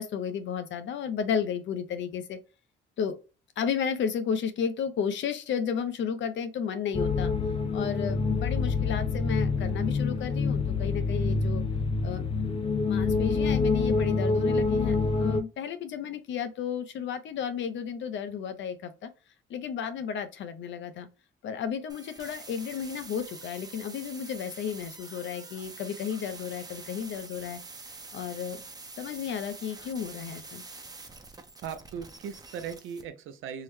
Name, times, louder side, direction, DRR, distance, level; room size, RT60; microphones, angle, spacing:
voice 1, 0.0-2.4 3.0-3.2 3.6-7.3 7.7-11.6 12.0-12.2 12.9-19.1 19.5-21.1 21.4-27.6 28.1-28.6 29.0-30.6, left 7 dB, 70° left, 0.7 m, -33 dB
sound 1, 6.9-15.4, left 4 dB, 25° left, 0.5 m, -27 dB
sound 2, 21.9-33.0, right 3 dB, 20° right, 0.6 m, -46 dB
voice 2, 31.6-33.6, right 7 dB, 85° right, 0.6 m, -38 dB
3.7 x 2.1 x 3.1 m
cardioid pair, 90°, 20 cm